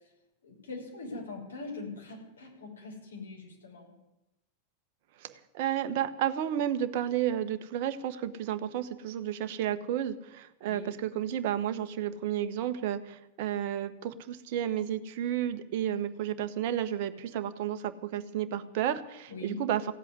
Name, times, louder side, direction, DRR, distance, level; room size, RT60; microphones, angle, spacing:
voice 1, 0.4-4.0 10.7-11.0 19.3-19.6, left 3 dB, 70° left, -1 dB, 5.4 m, -42 dB
voice 2, 5.2-19.8, right 10 dB, 50° right, 9 dB, 1.1 m, -32 dB
16.0 x 8.3 x 9.8 m, 0.91 s
figure-of-eight pair, 90°, 0 cm